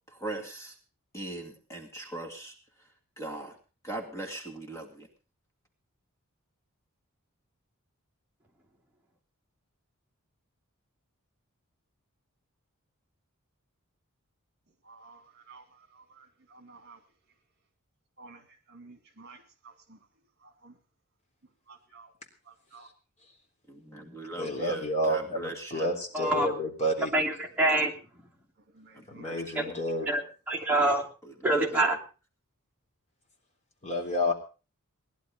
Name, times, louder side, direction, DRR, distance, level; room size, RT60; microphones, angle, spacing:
voice 1, 0.1-0.8 1.1-2.5 3.2-3.5 3.8-5.1 23.7-25.9 28.9-29.8 31.2-32.0, right 2 dB, 15° left, 2.4 m, -40 dB
voice 2, 14.9-15.6 15.9-17.0 18.2-18.4 18.7-20.0 20.4-20.7 21.7-22.1 22.5-22.9 28.7-29.3, right 4 dB, 50° right, 2.5 m, -52 dB
voice 3, 24.4-27.1 29.1-30.2 33.8-34.3, equal, 30° left, 3.4 m, -30 dB
voice 4, 26.1-26.5 27.1-27.9 29.5-29.7 30.1-30.2 30.5-31.1 31.4-32.0, right 1 dB, 10° right, 2.9 m, -25 dB
19.0 x 11.5 x 5.2 m
head